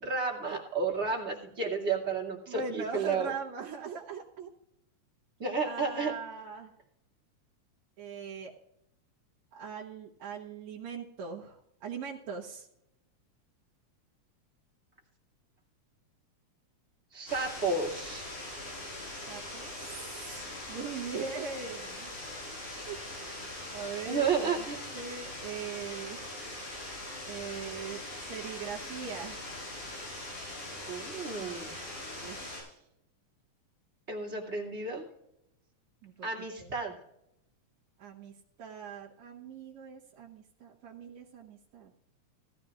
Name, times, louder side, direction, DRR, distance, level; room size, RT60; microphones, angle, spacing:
voice 1, 0.0-3.3 5.4-6.1 17.1-18.3 24.0-24.8 30.9-31.8 34.1-35.1 36.2-36.9, right 4 dB, 25° right, -2 dB, 2.5 m, -32 dB
voice 2, 2.5-4.5 5.6-6.7 8.0-8.5 9.5-12.7 19.3-22.1 22.9-23.0 23.7-24.7 24.9-26.2 27.3-29.4 32.2-32.8 36.0-36.7 38.0-38.3 38.6-41.9, right 5 dB, 70° right, -4 dB, 2.4 m, -41 dB
sound 1, 17.3-32.6, left 1 dB, 85° left, 7.7 m, -41 dB
18.0 x 14.0 x 2.5 m, 0.81 s
omnidirectional pair, 3.5 m